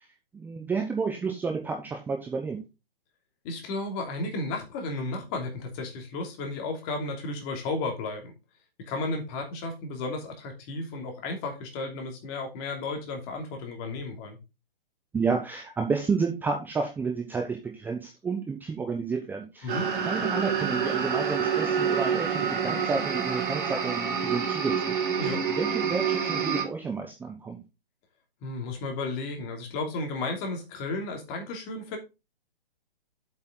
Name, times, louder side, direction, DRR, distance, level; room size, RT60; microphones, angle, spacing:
voice 1, 0.3-2.6 15.1-19.8 20.1-25.0 25.6-27.6, right 5 dB, 5° right, 2 dB, 0.9 m, -31 dB
voice 2, 3.4-8.3 8.8-14.4 19.6-19.9 25.2-25.4 28.4-32.0, left 3 dB, 30° left, 3 dB, 2.9 m, -33 dB
sound 1, 19.7-26.6, right 6 dB, 55° right, 4.7 m, -27 dB
8.0 x 7.2 x 3.9 m, 0.26 s
hypercardioid pair, 135°, 29 cm